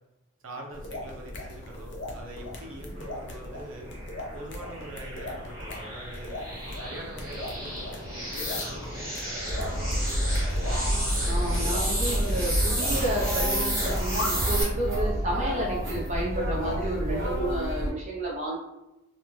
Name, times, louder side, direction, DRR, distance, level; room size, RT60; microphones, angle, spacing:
voice 1, 0.4-3.9 4.3-6.4 6.8-7.8 8.3-10.3, right 1 dB, 90° right, 0 dB, 0.6 m, -43 dB
sound 1, 0.7-14.7, left 1 dB, 60° left, 0.5 m, -39 dB
sound 2, 3.1-14.6, right 1 dB, 15° right, 1.1 m, -33 dB
sound 3, 9.5-17.9, equal, 75° right, 0.9 m, -28 dB
voice 2, 11.2-18.6, right 1 dB, 35° right, -4 dB, 0.7 m, -31 dB
2.5 x 2.2 x 3.0 m, 0.94 s
head